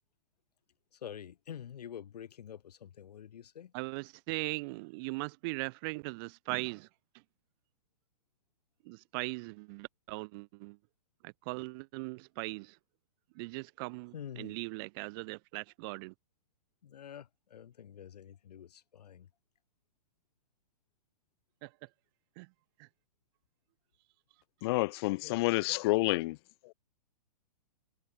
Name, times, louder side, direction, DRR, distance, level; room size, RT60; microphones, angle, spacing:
voice 1, 0.9-3.7 14.1-14.6 16.8-19.3, left 9 dB, 70° left, 1.4 m, -47 dB
voice 2, 3.7-6.9 8.9-10.8 11.2-12.8 13.4-16.1 21.6-21.7 22.4-22.5 22.8-22.9, right 28 dB, 35° right, 0.6 m, -39 dB
voice 3, 24.6-26.4 26.6-26.7, left 21 dB, 40° left, 0.5 m, -29 dB
hypercardioid pair, 130°, 21 cm